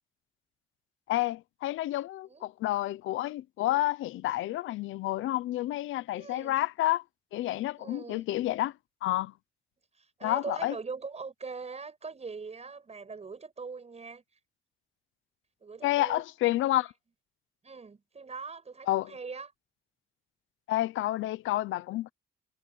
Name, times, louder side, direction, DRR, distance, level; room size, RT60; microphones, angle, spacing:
voice 1, 1.1-7.0 7.3-8.7 9.0-9.3 10.2-10.7 15.8-16.9 18.9-19.1 20.7-22.1, left 15 dB, 85° left, 0.9 m, -29 dB
voice 2, 6.2-6.6 7.8-8.2 10.0-14.2 15.6-16.2 17.6-19.5, right 4 dB, 35° right, 7.1 m, -41 dB
cardioid pair, 90°, 20 cm